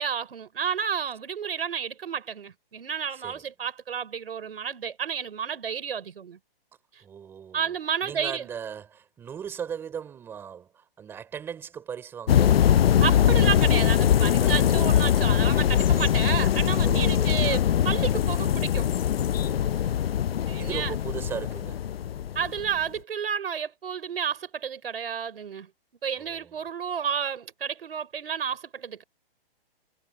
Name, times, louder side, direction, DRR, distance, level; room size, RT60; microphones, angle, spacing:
voice 1, 0.0-6.4 6.9-7.0 7.5-8.5 13.0-18.9 20.5-20.9 22.4-25.7 26.0-29.0, right 7 dB, 70° right, 5.2 m, -31 dB
voice 2, 7.0-7.7 8.0-13.2 14.4-14.5 15.8-16.0 16.8-17.3 19.4-20.2 20.6-21.9 26.2-26.5, right 8 dB, 5° right, 4.1 m, -38 dB
sound 1, 12.3-22.8, left 10 dB, 70° left, 0.6 m, -22 dB
hypercardioid pair, 180°, 30 cm